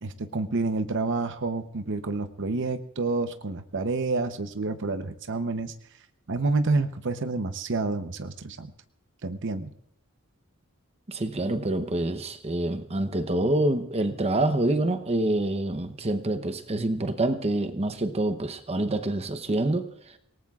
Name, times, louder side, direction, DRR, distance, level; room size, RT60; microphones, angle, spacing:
voice 1, 0.0-5.7 6.3-8.7 9.2-9.7, right 3 dB, 60° right, 0.8 m, -28 dB
voice 2, 11.1-20.2, right 1 dB, 30° right, 0.8 m, -26 dB
26.5 x 18.5 x 2.4 m
head